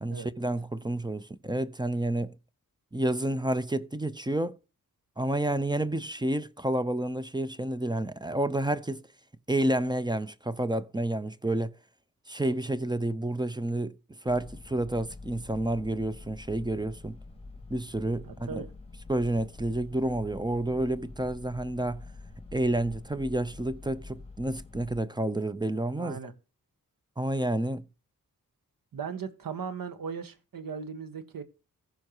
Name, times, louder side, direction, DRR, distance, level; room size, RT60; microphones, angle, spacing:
voice 1, 0.0-2.3 2.9-4.6 5.2-9.0 9.5-11.7 12.3-13.9 14.2-17.1 17.7-18.6 19.1-22.0 22.5-26.2 27.2-27.8, right 1 dB, 10° right, 0.6 m, -29 dB
sound 1, 14.3-25.0, left 3 dB, 15° left, 2.1 m, -46 dB
voice 2, 18.2-18.7 26.0-26.3 28.9-31.4, right 6 dB, 70° right, 1.5 m, -38 dB
15.5 x 5.7 x 3.0 m
cardioid pair, 75°, 35 cm